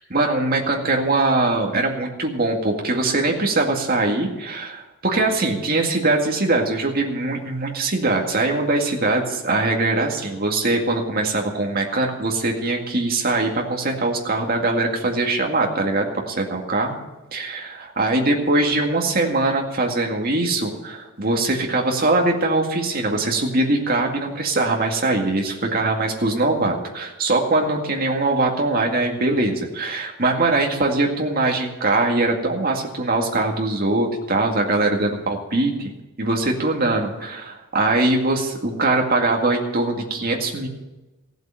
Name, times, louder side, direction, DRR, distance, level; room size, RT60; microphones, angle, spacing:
voice 1, 0.1-16.9 17.3-35.9 36.2-40.7, right 2 dB, 40° right, 1 dB, 2.1 m, -22 dB
15.5 x 8.0 x 7.6 m, 1.1 s
head